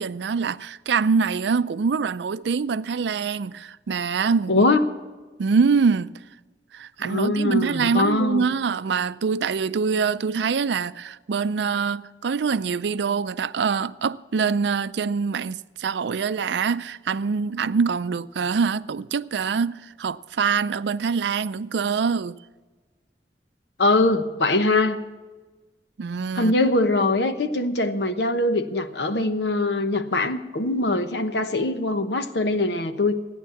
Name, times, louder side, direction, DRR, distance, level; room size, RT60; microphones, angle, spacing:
voice 1, 0.0-4.7 5.4-6.1 6.7-22.4 26.0-26.5, right 5 dB, 75° right, 0.4 m, -24 dB
voice 2, 4.5-4.8 7.0-8.5 23.8-25.0 26.3-33.2, left 2 dB, 75° left, 1.0 m, -22 dB
14.5 x 10.0 x 7.1 m
head